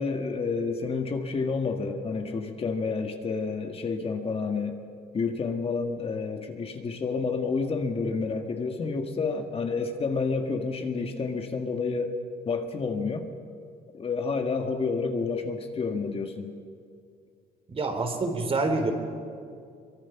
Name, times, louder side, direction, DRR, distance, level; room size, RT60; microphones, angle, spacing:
voice 1, 0.0-4.8 5.1-12.1 12.5-13.3 13.9-16.5, left 4 dB, 35° left, 4 dB, 1.9 m, -29 dB
voice 2, 17.7-18.9, right 3 dB, 35° right, 5 dB, 3.3 m, -27 dB
23.5 x 23.0 x 6.0 m, 2.3 s
cardioid pair, 110°, 17 cm